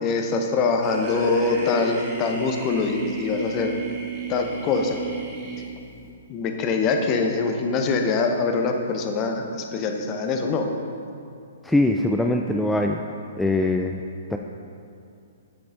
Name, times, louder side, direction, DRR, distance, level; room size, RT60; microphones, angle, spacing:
voice 1, 0.0-3.7 4.3-5.0 6.3-10.6, left 4 dB, 30° left, 4 dB, 0.9 m, -24 dB
sound 1, 0.8-6.1, right 3 dB, 20° right, 1.8 m, -34 dB
voice 2, 11.6-13.0 13.4-14.0 14.3-14.4, left 2 dB, 5° left, 3 dB, 0.3 m, -22 dB
8.5 x 8.3 x 3.9 m, 2.5 s
figure-of-eight pair, 120°, 0 cm